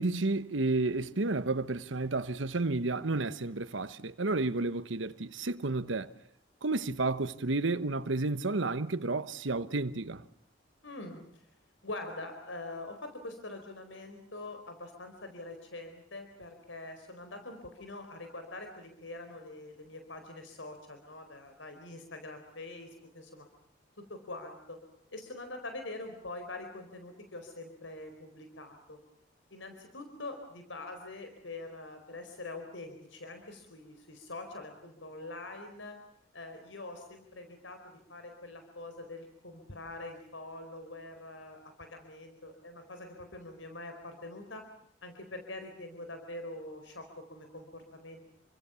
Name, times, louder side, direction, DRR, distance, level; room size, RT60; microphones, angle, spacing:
voice 1, 0.0-6.1 6.6-10.2, right 3 dB, 90° right, 1.2 m, -31 dB
voice 2, 10.8-11.5 11.8-23.5 24.1-24.8 25.1-29.0 29.5-36.0 36.3-37.8 38.1-44.7 45.0-48.3, left 2 dB, 80° left, 4.5 m, -44 dB
29.5 x 25.0 x 7.1 m
head